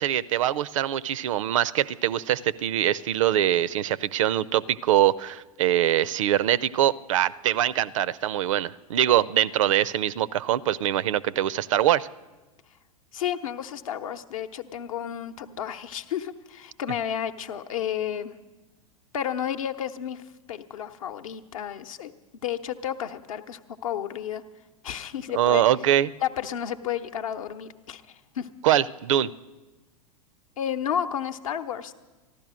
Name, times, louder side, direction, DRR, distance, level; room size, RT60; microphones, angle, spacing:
voice 1, 0.0-12.1 25.3-26.1 28.6-29.3, right 12 dB, 60° right, 21 dB, 0.4 m, -23 dB
voice 2, 13.1-18.3 19.1-20.2 20.5-22.1 22.4-24.4 24.8-25.6 26.2-28.5 30.6-31.9, left 9 dB, 65° left, 9 dB, 0.8 m, -32 dB
14.5 x 11.5 x 6.2 m, 1.2 s
figure-of-eight pair, 95°, 19 cm